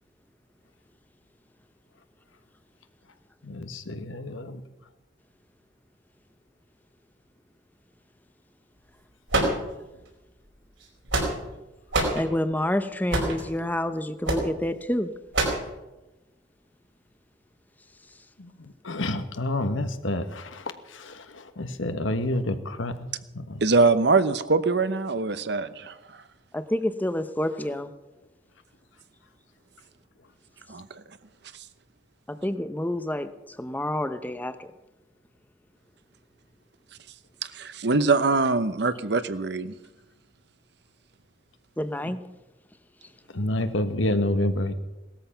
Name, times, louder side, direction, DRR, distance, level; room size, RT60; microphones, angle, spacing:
voice 1, 3.4-4.6 18.8-20.6 21.1-21.2 21.6-22.9 23.3-23.6 43.3-44.7, left 1 dB, 90° left, 9 dB, 1.4 m, -28 dB
sound 1, 9.3-10.1 10.8-11.6 11.9-12.2 13.1-13.4 14.2-14.5 15.3-15.7, right 2 dB, 80° right, 5.1 m, -25 dB
voice 2, 12.1-15.1 26.5-27.9 32.3-34.6 41.8-42.2, left 1 dB, 10° left, 10 dB, 0.8 m, -28 dB
voice 3, 23.6-25.9 30.7-31.0 37.4-39.7, right 3 dB, 60° right, 12 dB, 0.9 m, -23 dB
18.5 x 13.5 x 5.8 m, 1.0 s
head